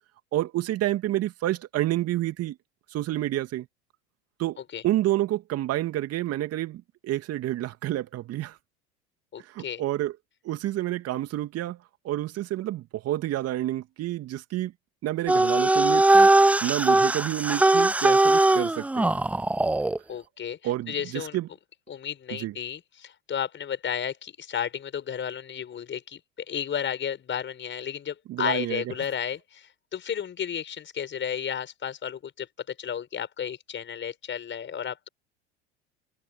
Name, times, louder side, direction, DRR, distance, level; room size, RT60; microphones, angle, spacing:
voice 1, 0.3-2.6 2.9-3.7 4.4-8.6 9.4-10.1 10.4-11.8 12.0-14.7 15.0-16.3 16.6-19.1 20.6-21.5 22.3-22.5 28.3-28.8, right 14 dB, 45° right, 2.6 m, -29 dB
voice 2, 9.3-9.8 20.1-21.4 21.9-26.2 26.5-35.1, left 8 dB, 35° left, 5.9 m, -33 dB
sound 1, 15.3-20.0, right 2 dB, 5° right, 0.4 m, -20 dB
hypercardioid pair, 70°, 33 cm